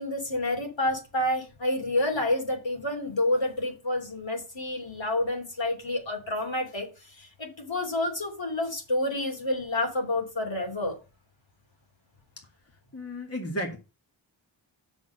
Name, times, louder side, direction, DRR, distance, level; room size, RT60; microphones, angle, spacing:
voice 1, 0.0-6.9 7.2-11.0, left 1 dB, 65° left, 3.2 m, -29 dB
voice 2, 12.9-13.8, equal, 30° left, 1.8 m, -33 dB
6.7 x 6.3 x 6.5 m
wide cardioid pair, 60°, 48 cm